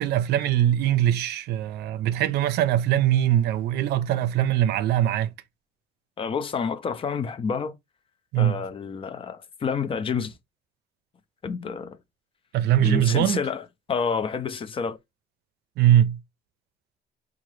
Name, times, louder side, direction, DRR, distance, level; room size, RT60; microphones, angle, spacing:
voice 1, 0.0-5.3 8.3-8.6 12.5-13.4 15.8-16.2, right 12 dB, 75° right, 0.5 m, -22 dB
voice 2, 6.2-7.7 8.4-10.3 11.4-12.0 12.8-13.6 13.9-15.0, left 5 dB, 30° left, 0.4 m, -28 dB
3.7 x 2.4 x 3.1 m
cardioid pair, 110°, 17 cm